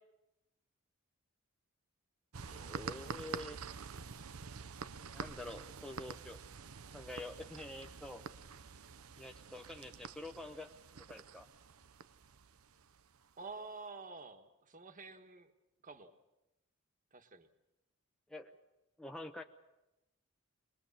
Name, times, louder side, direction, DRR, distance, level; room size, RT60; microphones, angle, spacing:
sound 1, 2.3-13.5, right 5 dB, 80° right, 0.8 m, -47 dB
voice 1, 2.4-3.6 5.1-6.4 6.9-8.2 9.2-10.7 11.1-11.5 18.3-18.5 19.0-19.4, left 2 dB, 5° left, 3 dB, 0.8 m, -47 dB
voice 2, 13.4-15.5 15.8-16.1 17.1-17.5, right 4 dB, 40° right, 7 dB, 1.4 m, -49 dB
23.5 x 21.0 x 7.3 m, 0.94 s
head